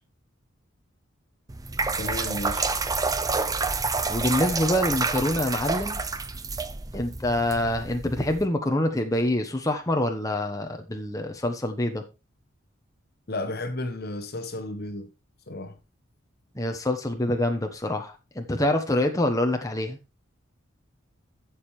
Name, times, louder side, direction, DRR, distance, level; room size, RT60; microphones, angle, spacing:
sound 1, 1.5-8.4, right 4 dB, 20° right, 0.6 m, -28 dB
voice 1, 2.0-2.7 13.3-15.1 15.5-15.8, left 2 dB, 50° left, 1.2 m, -33 dB
voice 2, 4.1-6.0 6.9-12.0 16.5-20.0, left 1 dB, 15° left, 1.1 m, -26 dB
11.5 x 7.4 x 3.2 m
head